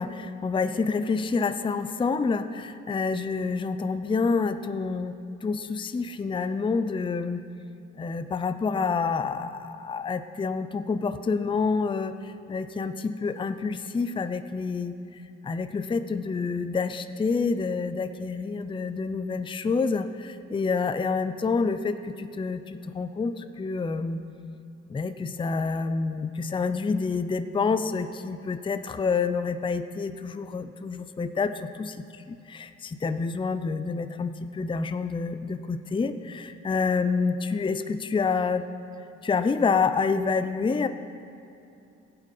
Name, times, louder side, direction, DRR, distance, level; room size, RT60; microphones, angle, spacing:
voice 1, 0.0-5.1 5.4-7.4 8.0-14.9 15.4-24.2 24.9-32.0 32.5-38.6 39.2-40.9, left 4 dB, 15° left, 10 dB, 0.5 m, -28 dB
16.0 x 8.4 x 5.3 m, 2.7 s
cardioid pair, 90°, 30 cm